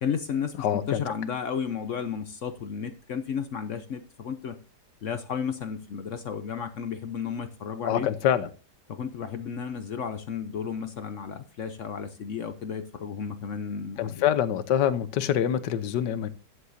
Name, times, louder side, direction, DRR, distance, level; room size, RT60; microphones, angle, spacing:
voice 1, 0.0-4.6 5.0-8.1 8.9-14.2, left 7 dB, 60° left, 10 dB, 0.9 m, -33 dB
voice 2, 0.6-1.0 7.8-8.5 14.0-16.3, left 10 dB, 80° left, 14 dB, 1.4 m, -25 dB
13.0 x 10.0 x 2.7 m, 0.34 s
omnidirectional pair, 1.9 m